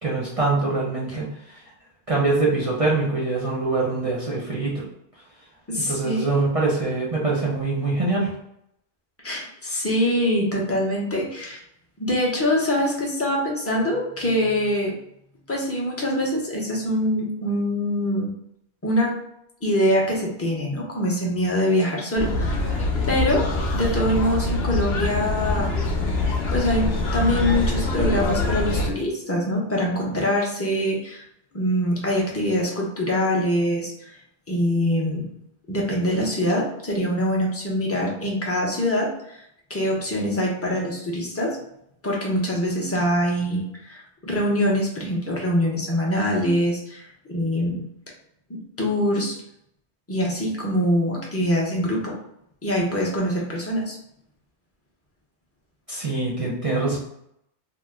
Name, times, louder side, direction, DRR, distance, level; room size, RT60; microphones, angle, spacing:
voice 1, 0.0-1.6 2.1-4.9 5.8-8.3 55.9-57.0, right 3 dB, 40° right, -5 dB, 0.6 m, -24 dB
voice 2, 5.7-6.5 9.2-11.6 12.0-14.9 15.5-18.3 18.8-19.1 19.6-22.8 23.1-25.7 26.5-31.2 31.5-34.2 34.5-35.3 35.7-39.4 39.7-41.6 42.0-47.8 48.5-49.4 50.1-52.1 52.6-54.0, equal, 15° left, -3 dB, 0.5 m, -24 dB
sound 1, 22.2-28.9, left 2 dB, 65° left, 0.8 m, -24 dB
2.9 x 2.1 x 3.4 m, 0.76 s
omnidirectional pair, 1.1 m